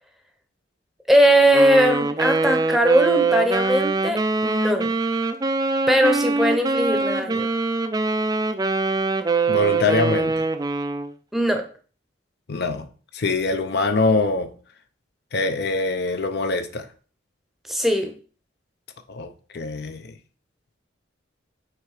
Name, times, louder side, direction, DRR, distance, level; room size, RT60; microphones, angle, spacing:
voice 1, 1.1-4.9 5.9-7.5 11.3-11.7 17.7-18.1, equal, ahead, 0.7 m, -19 dB
Wind instrument woodwind instrument, 1.5-11.1, right 3 dB, 20° right, 0.4 m, -23 dB
voice 2, 9.5-10.4 12.5-12.9 13.1-14.5 15.3-16.9 19.1-20.1, left 3 dB, 55° left, 0.6 m, -23 dB
6.5 x 3.3 x 4.9 m
head